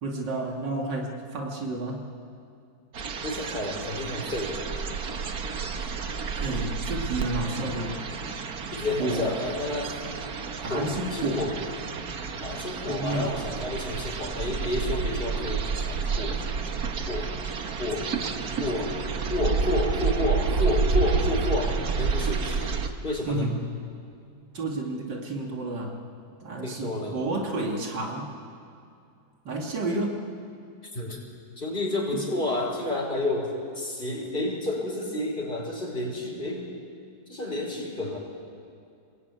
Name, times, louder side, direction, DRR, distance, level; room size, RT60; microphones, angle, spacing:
voice 1, 0.0-2.1 6.3-8.0 9.0-9.3 10.6-11.5 12.9-13.4 23.3-23.7 24.5-26.0 26.4-28.3 29.4-30.3 32.1-32.2, right 2 dB, 85° right, 0 dB, 2.9 m, -30 dB
sound 1, 2.9-22.9, right 5 dB, 60° right, 1.8 m, -30 dB
voice 2, 3.2-4.6 8.7-10.0 10.7-11.6 12.4-16.4 17.1-17.4 17.8-18.1 18.6-19.0 19.3-22.7 23.0-23.5 26.6-27.3 30.9-31.2 31.6-36.7 37.3-38.2, left 2 dB, 30° left, -2 dB, 5.3 m, -30 dB
27.0 x 21.0 x 9.5 m, 2.4 s
omnidirectional pair, 1.9 m